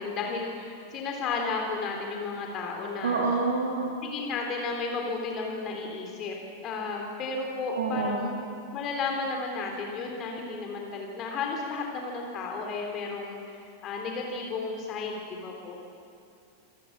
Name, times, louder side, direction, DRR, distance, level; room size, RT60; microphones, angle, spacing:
voice 1, 0.0-3.3 4.0-6.4 6.6-8.4 8.7-13.4 13.8-15.7, left 4 dB, 35° left, 1 dB, 3.6 m, -33 dB
voice 2, 3.0-3.9 7.7-8.3, right 3 dB, 65° right, 0 dB, 2.8 m, -27 dB
27.0 x 16.5 x 7.5 m, 2.5 s
figure-of-eight pair, 90°, 0 cm